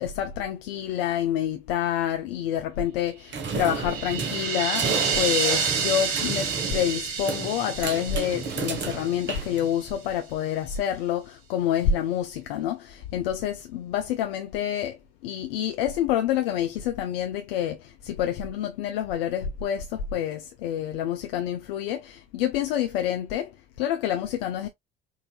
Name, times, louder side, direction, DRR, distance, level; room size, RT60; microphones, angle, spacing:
voice 1, 0.0-4.9 5.1-23.5 23.8-24.7, left 10 dB, 65° left, 0.7 m, -28 dB
sound 1, 3.3-10.1, right 4 dB, 35° right, 1.4 m, -33 dB
sound 2, 3.4-9.6, right 6 dB, 65° right, 1.6 m, -29 dB
5.6 x 2.8 x 2.3 m
figure-of-eight pair, 60°, 31 cm